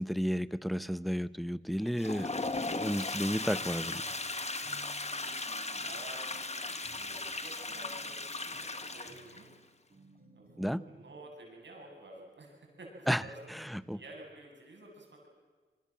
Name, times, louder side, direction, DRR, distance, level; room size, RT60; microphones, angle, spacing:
voice 1, 0.0-4.0 10.6-10.8 13.1-13.2 13.5-14.0, equal, ahead, 16 dB, 0.9 m, -33 dB
Toilet flush, 1.8-9.5, left 3 dB, 35° left, 1.9 m, -37 dB
sound 1, 2.4-11.3, right 3 dB, 50° right, 3.7 m, -59 dB
voice 2, 5.8-9.5 10.3-13.4 13.7-15.3, right 1 dB, 75° right, 0 dB, 7.9 m, -51 dB
26.5 x 23.5 x 7.4 m, 1.4 s
cardioid pair, 65°, 19 cm